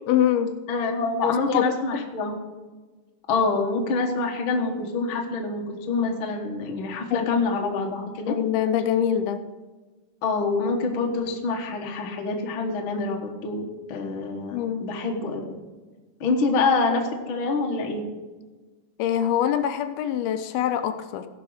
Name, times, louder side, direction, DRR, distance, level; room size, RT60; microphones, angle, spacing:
voice 1, 0.1-0.5 1.2-1.7 1.9-2.0 7.1-7.3 8.3-9.4 14.5-14.9 19.0-21.3, left 10 dB, 80° left, 9 dB, 2.5 m, -24 dB
voice 2, 0.7-2.4 3.3-8.3 10.2-15.4 16.2-18.0, left 3 dB, 55° left, 1 dB, 1.4 m, -26 dB
17.0 x 6.0 x 4.9 m, 1.3 s
omnidirectional pair, 4.4 m